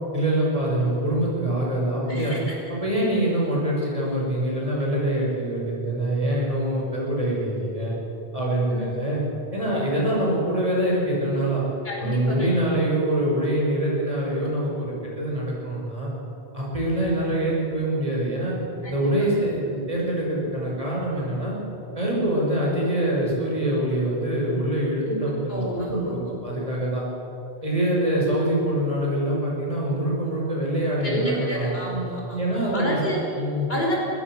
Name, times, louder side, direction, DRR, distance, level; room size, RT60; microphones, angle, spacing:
voice 1, 0.1-2.4 2.7-8.0 8.3-9.2 9.5-11.6 12.0-16.1 16.5-18.5 18.9-21.5 21.9-27.0 27.6-31.8 32.4-33.0 33.4-33.7, right 1 dB, 35° right, -4 dB, 6.3 m, -24 dB
voice 2, 2.1-2.5 8.7-8.8 11.8-12.5 18.8-18.9 25.1-25.2 25.5-26.1 31.0-33.2 33.7-34.0, right 1 dB, 65° left, -2 dB, 5.0 m, -29 dB
22.5 x 20.0 x 6.4 m, 3.0 s
omnidirectional pair, 1.1 m